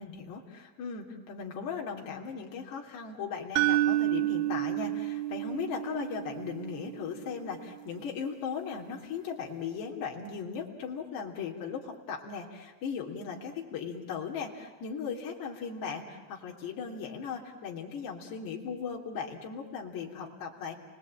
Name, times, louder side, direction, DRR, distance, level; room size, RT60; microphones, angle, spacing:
voice 1, 0.0-20.7, left 6 dB, 45° left, 1 dB, 3.1 m, -38 dB
sound 1, 3.6-7.6, right 14 dB, 75° right, 1.2 m, -30 dB
29.5 x 20.0 x 8.8 m, 1.2 s
cardioid pair, 175°, 48 cm